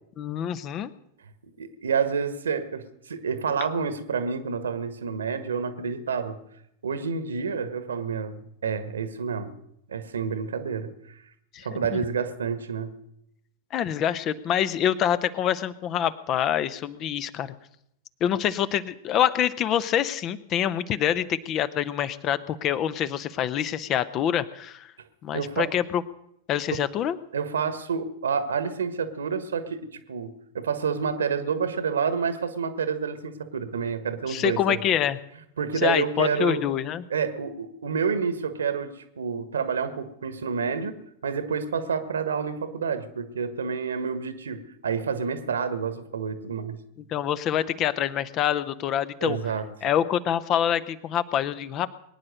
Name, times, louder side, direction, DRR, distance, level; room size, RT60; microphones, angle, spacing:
voice 1, 0.2-0.9 11.5-12.0 13.7-17.5 18.2-24.9 25.2-26.0 26.5-27.2 34.3-35.2 35.8-37.0 47.1-49.5 49.8-51.9, left 10 dB, 35° left, 15 dB, 0.8 m, -26 dB
voice 2, 1.6-6.4 6.8-9.5 9.9-11.2 11.6-13.0 25.3-25.7 26.7-26.8 27.3-34.8 35.6-36.6 37.1-41.0 41.2-46.8 49.2-49.6, right 6 dB, 70° right, 12 dB, 1.5 m, -29 dB
22.5 x 9.8 x 6.5 m, 0.77 s
figure-of-eight pair, 90°, 0 cm